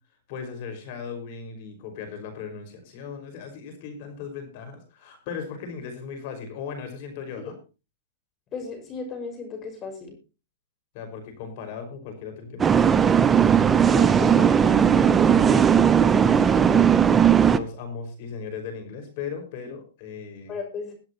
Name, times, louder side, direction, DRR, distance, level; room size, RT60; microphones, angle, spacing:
voice 1, 0.3-7.6 10.9-13.4 13.8-16.9 17.5-20.5, left 6 dB, 50° left, 6 dB, 5.5 m, -37 dB
voice 2, 8.5-10.2 20.5-20.9, left 4 dB, 25° left, 5 dB, 5.6 m, -35 dB
sound 1, 12.6-17.6, right 8 dB, 15° right, 0.7 m, -17 dB
22.5 x 8.0 x 3.0 m, 0.32 s
hypercardioid pair, 145°, 0 cm